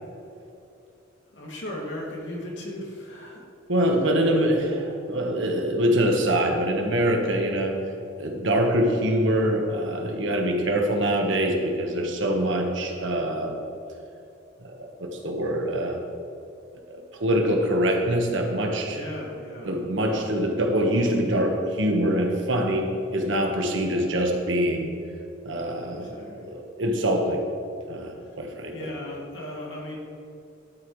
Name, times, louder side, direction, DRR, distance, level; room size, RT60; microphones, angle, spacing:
voice 1, 1.3-3.4 3.8-3.9 4.2-4.9 12.8-13.1 18.9-20.2 25.9-26.6 28.7-30.0, left 1 dB, 65° left, -3 dB, 2.5 m, -37 dB
voice 2, 3.7-4.8 5.1-7.8 8.2-13.6 14.6-16.0 16.9-19.0 19.6-24.9 25.4-27.4 27.9-28.9, equal, 70° right, 2 dB, 1.3 m, -24 dB
12.0 x 9.1 x 3.2 m, 2.7 s
head